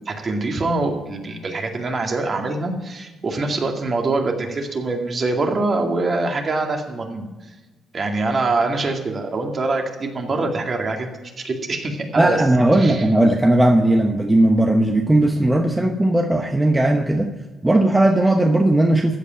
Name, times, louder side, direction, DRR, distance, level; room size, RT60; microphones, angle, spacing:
voice 1, 0.1-7.5 7.9-11.1 11.4-12.4 12.8-13.0, right 3 dB, 40° right, 2 dB, 2.2 m, -24 dB
voice 2, 12.2-17.3 17.6-19.2, right 1 dB, 15° right, 3 dB, 1.0 m, -17 dB
15.0 x 5.3 x 8.9 m, 1.2 s
cardioid pair, 90°, 0 cm